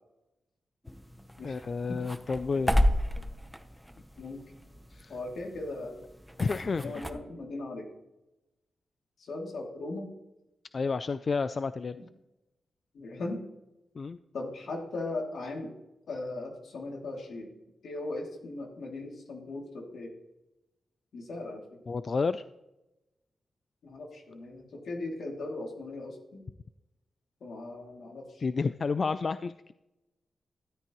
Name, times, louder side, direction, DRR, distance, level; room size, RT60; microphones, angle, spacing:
sound 1, 0.8-7.1, equal, ahead, 0.9 m, -32 dB
voice 1, 1.4-2.8 4.9-5.1 6.4-7.0 10.7-12.0 14.0-14.2 21.9-22.4 28.4-29.7, left 4 dB, 45° left, 12 dB, 0.3 m, -30 dB
voice 2, 5.1-6.0 6.8-7.9 9.2-10.1 12.0-12.1 12.9-13.5 14.3-15.7 16.1-17.5 17.8-20.1 21.1-21.8 23.8-26.4 27.4-28.5, left 2 dB, 80° left, 1 dB, 2.7 m, -38 dB
13.5 x 13.0 x 3.1 m, 0.94 s
wide cardioid pair, 100°, 0 cm